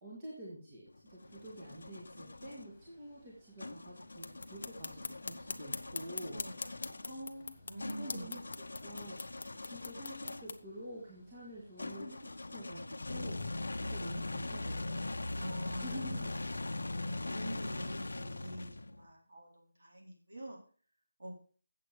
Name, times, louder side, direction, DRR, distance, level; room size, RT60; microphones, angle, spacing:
voice 1, 0.0-6.3 7.1-7.5 8.0-8.4 8.8-16.3, equal, 20° right, -6 dB, 2.1 m, -48 dB
sound 1, 0.9-2.7 3.6-10.6 11.8-19.1, left 2 dB, 75° left, 0.9 m, -41 dB
Water, 1.2-15.1, left 1 dB, 10° left, 2.6 m, -66 dB
sound 2, 4.2-10.6, left 4 dB, 40° left, 0.8 m, -44 dB
voice 2, 7.6-8.6 15.4-20.6 21.2-21.4, right 1 dB, 50° right, -1 dB, 3.8 m, -47 dB
8.5 x 7.6 x 5.1 m, 0.41 s
figure-of-eight pair, 175°, 0 cm